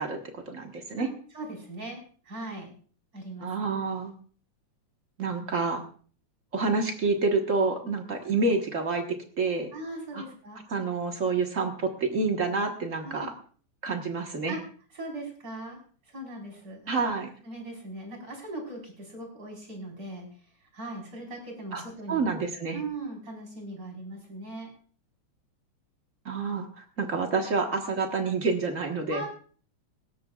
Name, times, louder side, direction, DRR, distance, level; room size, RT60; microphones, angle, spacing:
voice 1, 0.0-1.1 3.4-4.1 5.2-5.8 6.5-9.7 10.1-10.2 10.7-13.3 13.8-14.6 16.9-17.3 21.7-21.8 22.1-22.8 26.2-29.2, right 4 dB, 50° right, 4 dB, 0.9 m, -28 dB
voice 2, 1.0-2.7 3.1-3.7 7.8-7.9 9.7-10.6 13.0-13.3 14.5-14.6 14.9-15.8 16.0-17.1 17.4-20.3 20.6-22.2 22.7-24.7 29.1-29.3, right 2 dB, 30° right, 1 dB, 4.9 m, -39 dB
18.5 x 16.5 x 2.4 m, 0.43 s
omnidirectional pair, 3.5 m